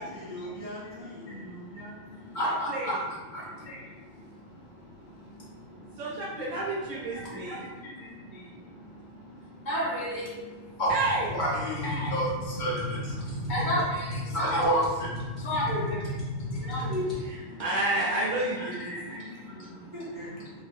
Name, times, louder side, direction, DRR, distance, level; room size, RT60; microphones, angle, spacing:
voice 1, 0.0-1.4 19.8-20.4, equal, 30° right, -10 dB, 0.4 m, -41 dB
voice 2, 1.3-2.9 3.3-6.0 6.9-10.9 11.3-17.6 18.6-19.9, equal, 45° left, -6 dB, 0.8 m, -33 dB
voice 3, 2.4-3.0 6.0-7.7 10.9-11.3 17.2-19.2, right 2 dB, 75° right, -5 dB, 0.9 m, -30 dB
sound 1, 10.9-17.2, left 1 dB, ahead, 0.8 m, -35 dB
2.7 x 2.4 x 2.6 m, 1.2 s
omnidirectional pair, 1.4 m